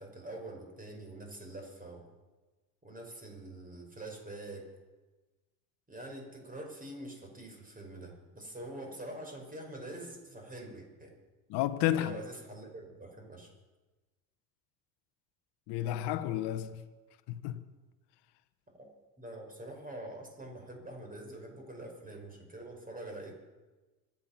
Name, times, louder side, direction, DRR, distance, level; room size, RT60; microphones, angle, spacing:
voice 1, 0.0-2.1 2.8-4.7 5.9-11.1 11.9-13.5 18.8-18.9 19.2-23.3, right 1 dB, 15° right, 5.5 m, -45 dB
voice 2, 11.5-12.2 15.7-16.8 17.3-17.7, left 13 dB, 55° left, 1.2 m, -31 dB
25.5 x 9.2 x 6.0 m
hypercardioid pair, 75°, 47 cm